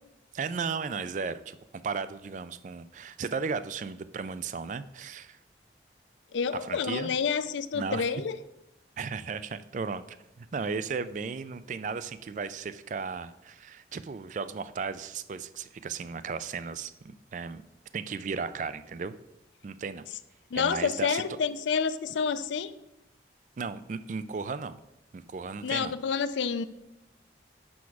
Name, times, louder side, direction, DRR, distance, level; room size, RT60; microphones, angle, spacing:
voice 1, 0.3-1.6 1.8-5.4 6.6-7.1 7.7-8.1 9.0-17.6 17.9-19.1 19.6-20.1 20.5-21.2 23.6-24.8 25.1-25.9, right 5 dB, 40° right, 14 dB, 0.3 m, -35 dB
voice 2, 6.3-8.4 20.5-22.7 25.6-26.6, left 6 dB, 80° left, 13 dB, 0.4 m, -29 dB
6.2 x 5.8 x 4.7 m, 0.88 s
head